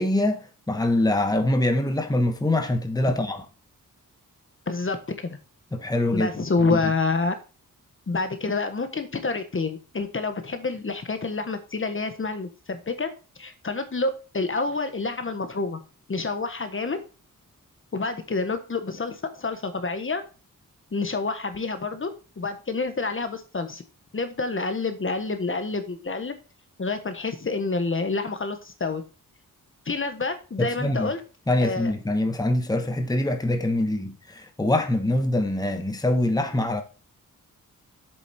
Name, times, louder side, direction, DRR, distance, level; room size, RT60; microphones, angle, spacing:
voice 1, 0.0-3.4 5.7-6.3 30.6-31.1 31.5-36.8, left 1 dB, 10° left, 1.2 m, -24 dB
voice 2, 4.7-5.0 5.2-5.4 6.1-7.4 8.1-13.1 13.4-15.8 16.1-17.0 17.9-20.2 20.9-22.1 22.4-23.8 24.1-26.3 26.8-29.0 29.8-31.2 31.6-31.9, left 3 dB, 35° left, 1.3 m, -28 dB
8.1 x 7.0 x 4.3 m
wide cardioid pair, 95°, 34 cm